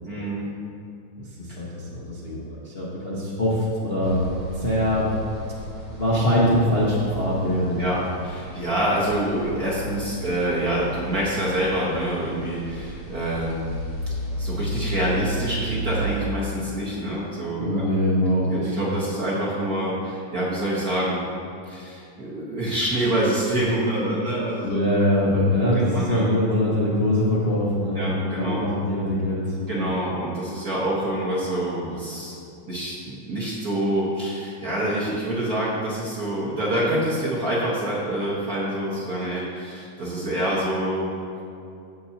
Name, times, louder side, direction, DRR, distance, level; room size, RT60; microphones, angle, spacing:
voice 1, 0.0-0.5 1.5-1.6 7.8-8.0 8.2-13.7 14.4-17.9 18.5-21.2 21.7-24.8 25.2-25.3 25.7-26.3 27.9-28.6 29.7-32.3 32.7-41.1, right 1 dB, 45° right, -7 dB, 1.2 m, -26 dB
voice 2, 1.2-4.2 4.5-5.1 6.0-7.9 17.6-18.8 24.6-29.9, left 1 dB, 65° left, -7 dB, 0.6 m, -23 dB
sound 1, 4.0-16.1, equal, 15° left, 1.3 m, -33 dB
16.0 x 6.5 x 2.9 m, 2.7 s
omnidirectional pair, 3.4 m